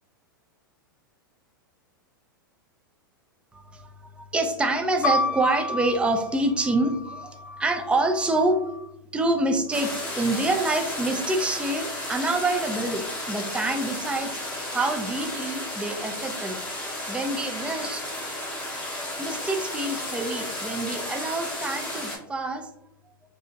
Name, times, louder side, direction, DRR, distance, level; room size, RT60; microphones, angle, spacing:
voice 1, 3.5-8.6 9.1-14.4 14.7-18.1 19.2-22.7, right 2 dB, 10° right, 5 dB, 0.4 m, -27 dB
sound 1, 5.0-8.9 9.7-10.4, left 3 dB, 75° left, 0.4 m, -32 dB
sound 2, 9.7-22.2, left 1 dB, 10° left, 0.8 m, -33 dB
2.9 x 2.3 x 2.4 m, 0.79 s
hypercardioid pair, 100°, 12 cm